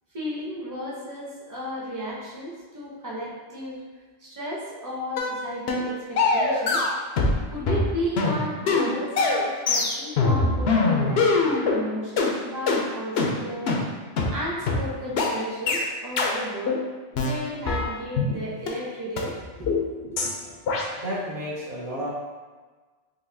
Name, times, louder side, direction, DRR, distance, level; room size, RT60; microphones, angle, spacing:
voice 1, 0.1-3.8 4.2-6.8 7.5-13.8 14.3-16.8 17.1-19.7, equal, 20° right, -7 dB, 0.8 m, -33 dB
sound 1, 5.2-5.3 5.7-5.9 6.2-7.4 7.7-11.8 12.2-12.3 12.7-12.8 13.2-13.3 13.7-13.8 14.2-14.3 14.7-14.8 15.2-15.3 15.7-15.8 16.2-16.3 16.7-16.8 17.2-18.3 18.7-18.8 19.2-19.3 19.7-19.8 20.2-20.3 20.7-20.8, left 3 dB, 75° left, 0.8 m, -22 dB
voice 2, 20.0-20.6 21.0-22.1, equal, 55° right, -7 dB, 1.0 m, -33 dB
3.9 x 2.6 x 2.6 m, 1.4 s
omnidirectional pair, 1.1 m